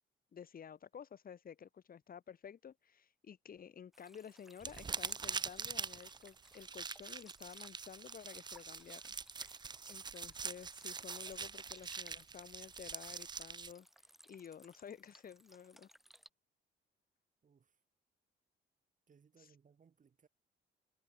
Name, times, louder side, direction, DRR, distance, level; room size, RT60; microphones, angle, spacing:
voice 1, 0.3-9.1 9.9-13.9 14.3-15.9 19.4-19.5, left 8 dB, 45° left, 1.5 m, -52 dB
sound 1, 3.9-16.3, equal, ahead, 3.1 m, -63 dB
sound 2, 4.6-13.7, right 5 dB, 20° right, 0.4 m, -44 dB
voice 2, 17.4-17.8 19.1-20.3, right 6 dB, 40° right, 2.6 m, -67 dB
cardioid pair, 90°, 20 cm